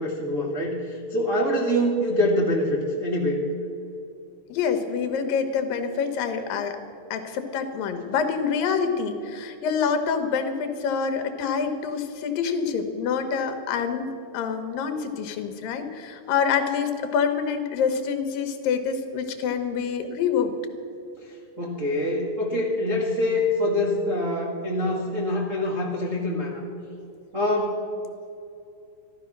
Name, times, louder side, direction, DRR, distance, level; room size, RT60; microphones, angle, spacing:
voice 1, 0.0-3.4 21.2-26.6 27.3-27.8, left 1 dB, 45° right, -4 dB, 0.9 m, -25 dB
voice 2, 4.5-6.8 7.1-20.5, left 6 dB, 80° left, 6 dB, 2.8 m, -26 dB
13.5 x 13.0 x 5.9 m, 2.5 s
omnidirectional pair, 4.0 m